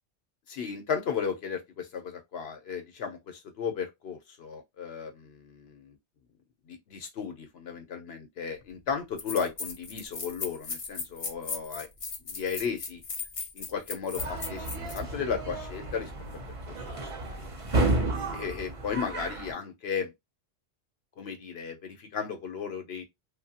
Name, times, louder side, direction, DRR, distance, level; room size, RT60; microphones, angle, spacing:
voice 1, 0.5-6.0 6.7-11.9 12.2-13.0 13.5-16.1 16.9-17.5 18.3-20.1 21.2-23.0, left 6 dB, 75° left, 1.0 m, -35 dB
sound 1, 8.6-8.7 9.2-15.0, left 5 dB, 40° left, 0.6 m, -37 dB
sound 2, 14.2-19.5, right 2 dB, 40° right, 0.6 m, -32 dB
2.8 x 2.3 x 2.7 m
omnidirectional pair, 1.1 m